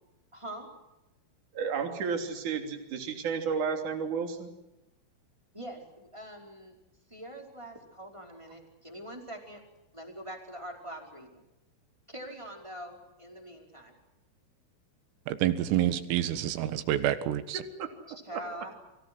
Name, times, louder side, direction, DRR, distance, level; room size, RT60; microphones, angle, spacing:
voice 1, 0.3-0.7 5.5-6.8 7.1-9.6 9.9-11.4 12.1-14.0 18.1-18.7, right 1 dB, 5° right, 1 dB, 4.3 m, -43 dB
voice 2, 1.5-4.5 17.8-17.9 18.3-18.4, right 6 dB, 45° right, 4 dB, 4.0 m, -32 dB
voice 3, 15.3-17.6, right 12 dB, 90° right, 11 dB, 4.2 m, -28 dB
29.5 x 25.5 x 6.2 m, 0.98 s
omnidirectional pair, 5.8 m